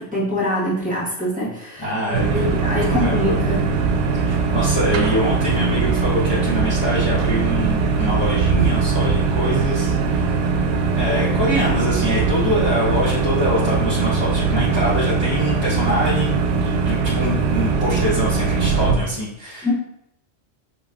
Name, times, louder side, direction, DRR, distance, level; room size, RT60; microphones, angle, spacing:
voice 1, 0.0-1.9 2.2-3.6 19.6-19.7, left 1 dB, 5° right, -8 dB, 1.3 m, -24 dB
voice 2, 1.8-2.5 2.9-3.4 4.1-10.4 11.0-19.7, equal, 20° left, -9 dB, 1.0 m, -24 dB
sound 1, 2.1-18.9, right 4 dB, 80° right, 0.9 m, -20 dB
5.1 x 3.8 x 2.5 m, 0.79 s
omnidirectional pair, 1.3 m